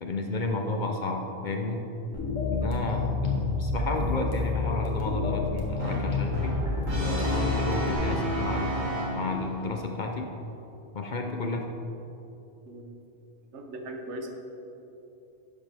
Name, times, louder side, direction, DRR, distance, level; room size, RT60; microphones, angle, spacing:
voice 1, 0.0-1.8 2.5-6.6 7.2-10.3 10.9-11.7, left 2 dB, 50° left, 3 dB, 0.6 m, -32 dB
sound 1, 2.1-7.9, left 3 dB, 85° left, 1.6 m, -29 dB
Brass instrument, 5.8-9.6, right 1 dB, 85° right, 2.0 m, -32 dB
voice 2, 13.5-14.3, right 1 dB, 65° right, 3 dB, 1.1 m, -38 dB
11.0 x 6.8 x 3.4 m, 3.0 s
omnidirectional pair, 1.3 m